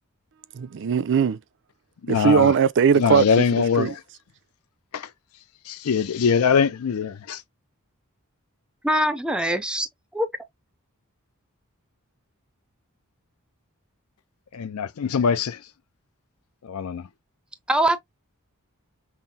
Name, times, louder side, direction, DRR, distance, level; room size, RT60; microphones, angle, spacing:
voice 1, 0.5-1.4 2.1-3.3 3.8-3.9, right 7 dB, 55° right, 0.4 m, -19 dB
voice 2, 2.0-2.5 3.0-4.0 4.9-5.1 5.6-7.4 14.5-15.6 16.6-17.1, left 6 dB, 70° left, 0.4 m, -22 dB
voice 3, 8.8-9.9 10.1-10.3 17.7-18.0, equal, 5° right, 0.5 m, -22 dB
5.6 x 2.0 x 2.7 m
head